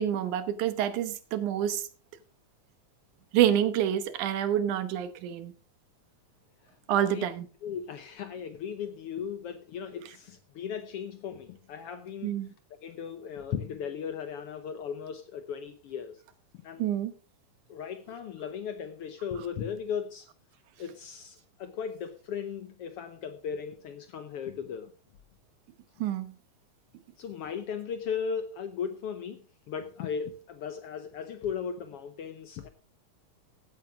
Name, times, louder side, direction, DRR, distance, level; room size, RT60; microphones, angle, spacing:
voice 1, 0.0-1.9 3.3-5.5 6.9-7.5 12.2-12.5 16.8-17.1 26.0-26.3, right 10 dB, 85° right, 2.5 m, -27 dB
voice 2, 7.0-7.3 7.6-12.3 12.8-16.2 16.5-16.9 17.7-20.3 20.8-24.9 27.2-32.7, left 7 dB, 70° left, 1.4 m, -37 dB
15.5 x 9.1 x 3.6 m
omnidirectional pair, 3.4 m